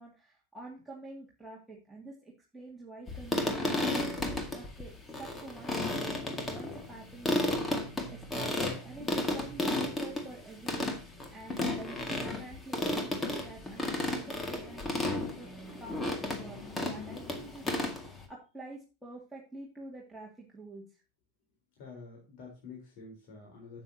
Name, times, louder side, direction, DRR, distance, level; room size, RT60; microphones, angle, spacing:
voice 1, 0.0-7.6 8.1-15.5 15.8-21.0, right 2 dB, 5° right, -4 dB, 2.3 m, -48 dB
sound 1, 3.1-18.2, left 2 dB, 15° left, 2.0 m, -33 dB
voice 2, 21.8-23.8, left 4 dB, 45° left, -2 dB, 3.9 m, -48 dB
12.0 x 8.3 x 2.8 m, 0.32 s
figure-of-eight pair, 90°, 0 cm